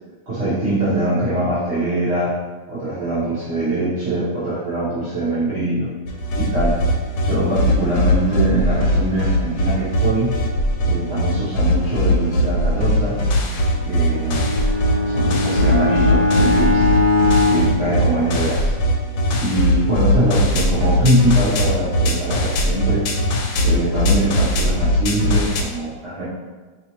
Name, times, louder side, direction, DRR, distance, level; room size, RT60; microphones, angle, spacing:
voice 1, 0.3-2.3 2.7-5.9 6.3-6.8 7.2-10.3 10.8-13.2 13.8-14.5 15.1-16.8 17.5-18.7 19.4-23.1 23.6-26.2, right 1 dB, 45° right, -11 dB, 1.1 m, -22 dB
sound 1, 6.1-25.6, equal, 80° left, 1.2 m, -20 dB
Bowed string instrument, 14.1-18.8, left 3 dB, 80° right, 1.3 m, -20 dB
4.4 x 3.2 x 2.9 m, 1.3 s
omnidirectional pair, 1.9 m